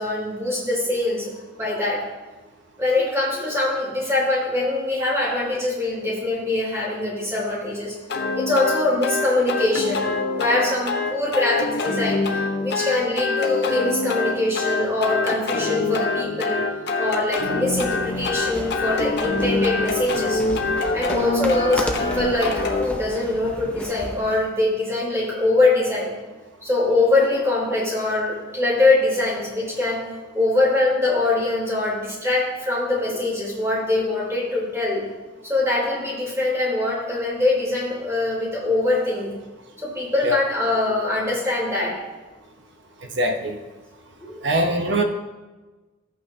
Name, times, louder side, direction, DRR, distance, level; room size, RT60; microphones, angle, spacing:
voice 1, 0.0-2.0 2.8-7.9 8.4-16.6 17.0-20.4 20.9-26.1 26.6-30.0 30.3-35.0 35.4-39.3 39.8-42.0 44.2-44.4, left 2 dB, 15° right, -6 dB, 3.6 m, -23 dB
sound 1, 8.1-22.9, left 3 dB, 55° left, 1.0 m, -25 dB
sound 2, 17.3-24.5, left 1 dB, 5° left, 0.6 m, -35 dB
voice 2, 43.1-43.6 44.4-45.0, right 1 dB, 60° right, 4 dB, 1.0 m, -22 dB
14.0 x 8.6 x 2.9 m, 1.2 s
head